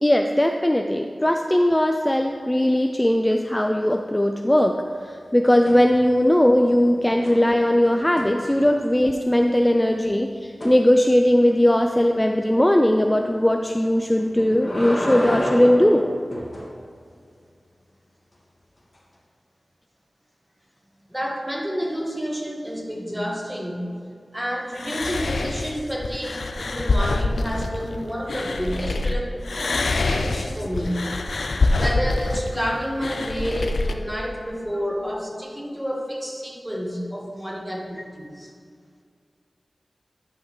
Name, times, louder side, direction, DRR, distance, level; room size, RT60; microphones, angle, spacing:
voice 1, 0.0-4.8 5.0-16.1, left 1 dB, 15° left, 4 dB, 0.4 m, -19 dB
sound 1, 5.7-6.3 6.6-9.0 10.6-10.8 14.2-16.7 18.9-19.0, equal, 35° left, 1.6 m, -31 dB
voice 2, 21.1-24.0 24.3-29.8 30.1-31.1 31.7-38.5, equal, 10° right, -1 dB, 1.4 m, -29 dB
sound 2, 24.8-29.1 29.4-33.9, left 3 dB, 85° left, 0.4 m, -25 dB
10.5 x 5.7 x 3.2 m, 2.1 s
wide cardioid pair, 50°, 0 cm